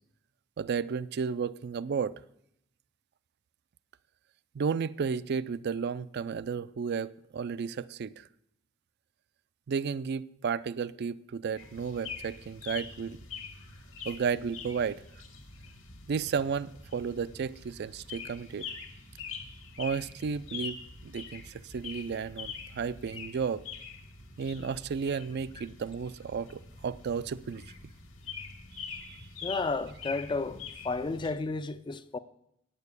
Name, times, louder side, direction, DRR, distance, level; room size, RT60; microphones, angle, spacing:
voice 1, 0.6-2.2 4.5-8.3 9.7-13.2 14.1-15.0 16.1-18.7 19.8-20.8 21.0-23.6 24.4-27.6 28.7-29.3, right 6 dB, 50° right, 0.4 m, -33 dB
sound 1, 11.6-31.3, left 5 dB, 65° left, 1.6 m, -44 dB
voice 2, 29.4-32.2, left 3 dB, 20° left, 0.3 m, -32 dB
8.9 x 6.8 x 8.3 m
head